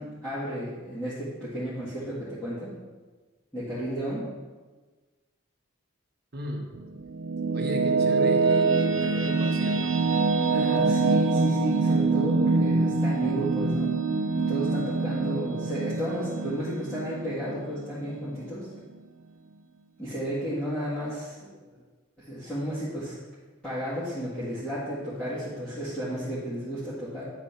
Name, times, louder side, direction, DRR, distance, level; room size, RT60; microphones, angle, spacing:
voice 1, 0.0-2.7 3.5-4.3 10.4-13.9 14.4-18.7 20.0-21.5 22.2-23.1 23.6-27.2, equal, 5° left, -13 dB, 1.9 m, -33 dB
voice 2, 6.3-6.7 7.5-10.0, equal, 50° right, 0 dB, 1.1 m, -37 dB
sound 1, 6.7-18.1, right 3 dB, 70° right, 0.6 m, -25 dB
9.9 x 4.3 x 5.7 m, 1.3 s
head